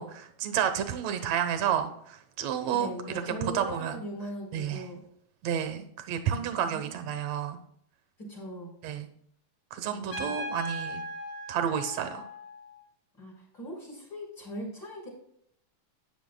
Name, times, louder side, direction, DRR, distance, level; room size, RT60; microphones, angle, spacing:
voice 1, 0.0-4.0 4.5-4.9 5.4-7.6 8.8-9.1 9.7-11.0 11.5-12.3, right 9 dB, 65° right, 8 dB, 2.0 m, -31 dB
voice 2, 2.7-5.0 6.3-6.9 8.2-8.7 9.9-10.3 13.2-15.1, equal, 30° left, -2 dB, 4.5 m, -40 dB
Trumpet, 10.1-12.8, equal, 90° left, 4.5 m, -38 dB
13.0 x 9.9 x 2.2 m, 0.69 s
omnidirectional pair, 4.0 m